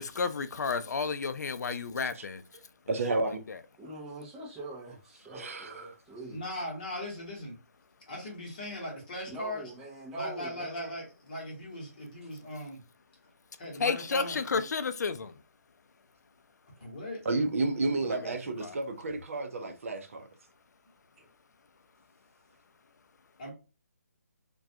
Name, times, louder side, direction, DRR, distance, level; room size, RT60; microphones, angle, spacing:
voice 1, 0.0-2.4 3.5-3.6 13.8-15.4 18.1-18.8, left 5 dB, 85° left, 0.4 m, -32 dB
voice 2, 2.9-3.4 5.4-5.7 17.3-20.3, right 3 dB, 55° right, 0.5 m, -31 dB
voice 3, 3.8-6.4 9.3-10.9 12.2-12.3 16.8-16.9 21.2-21.3, right 2 dB, 5° right, 0.4 m, -44 dB
voice 4, 6.3-7.5 8.1-9.7 10.1-12.8 13.6-14.6 16.8-17.2 23.4-23.5, left 1 dB, 30° left, 1.0 m, -39 dB
2.3 x 2.2 x 2.6 m
hypercardioid pair, 175°, 9 cm